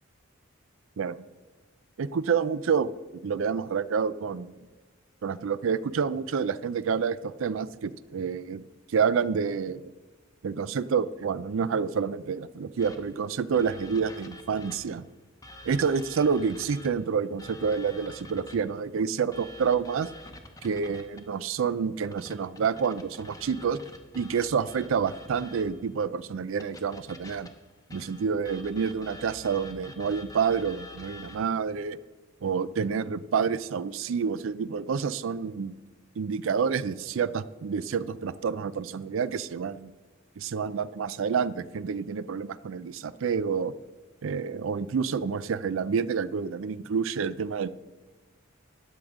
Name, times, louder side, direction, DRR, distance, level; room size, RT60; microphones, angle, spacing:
voice 1, 2.0-2.9 3.2-4.5 5.2-9.9 10.4-15.0 15.6-20.1 20.6-23.8 24.1-27.5 27.9-32.0 32.4-35.7 36.2-39.9 40.4-43.7 44.2-47.7, right 6 dB, 65° right, 16 dB, 0.4 m, -28 dB
sound 1, 12.8-15.0 15.4-18.8 19.3-21.4 22.1-25.9 26.6-31.5, left 1 dB, 15° left, 0.8 m, -47 dB
13.0 x 8.8 x 3.6 m, 1.3 s
head